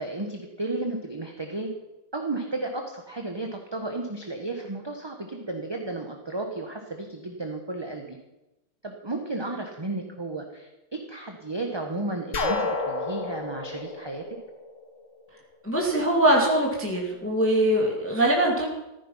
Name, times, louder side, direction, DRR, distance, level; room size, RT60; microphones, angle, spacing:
voice 1, 0.0-1.7 2.1-8.2 8.8-14.2, right 2 dB, 15° right, 3 dB, 1.1 m, -33 dB
sound 1, 12.3-15.1, left 3 dB, 45° left, 1.8 m, -30 dB
voice 2, 15.6-18.7, right 1 dB, 5° left, -1 dB, 2.2 m, -22 dB
14.5 x 14.0 x 5.7 m, 0.99 s
omnidirectional pair, 2.0 m